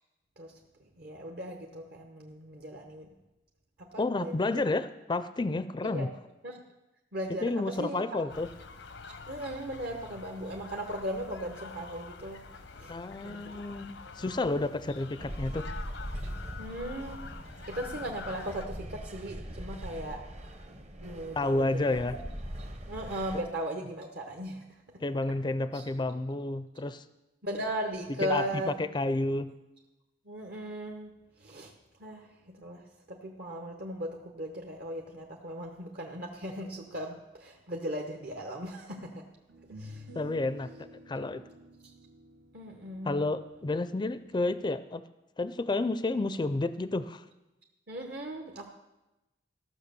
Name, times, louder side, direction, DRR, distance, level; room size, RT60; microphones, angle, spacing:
voice 1, 0.8-3.1 3.8-4.7 5.9-6.1 6.4-6.6 7.1-8.2 9.0-12.9 13.2-13.6 14.0-14.3 16.6-17.2 17.7-20.2 21.0-22.0 22.9-25.0 25.7-25.8 27.4-28.8 30.2-31.1 31.4-31.7 32.0-39.3 39.7-40.0 42.5-43.2 47.9-48.7, right 1 dB, 60° right, 1 dB, 1.1 m, -38 dB
voice 2, 4.0-6.1 7.4-8.5 12.9-15.6 21.3-22.2 25.0-27.0 28.2-28.5 28.8-29.5 40.1-40.7 41.1-41.4 43.0-45.0 45.4-47.2, left 2 dB, 25° left, 13 dB, 0.4 m, -30 dB
sound 1, 8.3-18.7, left 4 dB, 85° left, 0.8 m, -46 dB
sound 2, 15.2-23.4, equal, 40° right, 0.9 m, -41 dB
sound 3, 39.5-44.8, right 1 dB, 85° right, 1.2 m, -51 dB
14.5 x 6.3 x 6.9 m, 1.0 s
head